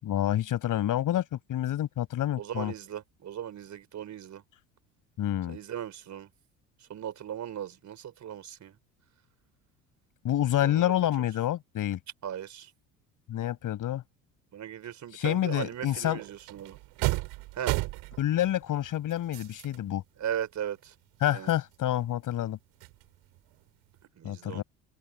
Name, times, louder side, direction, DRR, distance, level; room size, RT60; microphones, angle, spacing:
voice 1, 0.0-2.7 5.2-5.6 10.2-12.0 13.3-14.0 15.1-16.2 18.2-20.0 21.2-22.6 24.2-24.6, left 12 dB, 55° left, 6.7 m, -28 dB
voice 2, 2.4-4.4 5.5-6.3 6.9-8.8 10.6-10.9 12.2-12.7 14.5-16.8 17.6-17.7 20.2-20.9 21.3-21.5 24.2-24.6, right 10 dB, 45° right, 4.4 m, -37 dB
sound 1, 15.7-15.8 16.1-19.9 20.3-20.4 20.9-22.5 22.8-24.0, right 22 dB, 65° right, 6.1 m, -35 dB
open air
hypercardioid pair, 65°, 39 cm